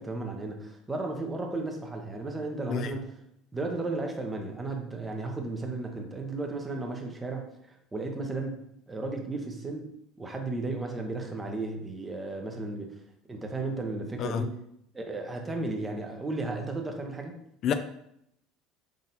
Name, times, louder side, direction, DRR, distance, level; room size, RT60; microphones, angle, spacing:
voice 1, 0.0-3.2 3.5-9.9 10.2-12.9 13.3-14.5 14.9-17.4, right 2 dB, 20° right, 3 dB, 0.9 m, -34 dB
voice 2, 2.7-2.9 14.2-14.4 17.6-17.7, left 9 dB, 55° left, 10 dB, 0.3 m, -28 dB
3.9 x 3.8 x 2.8 m, 0.74 s
hypercardioid pair, 80°, 0 cm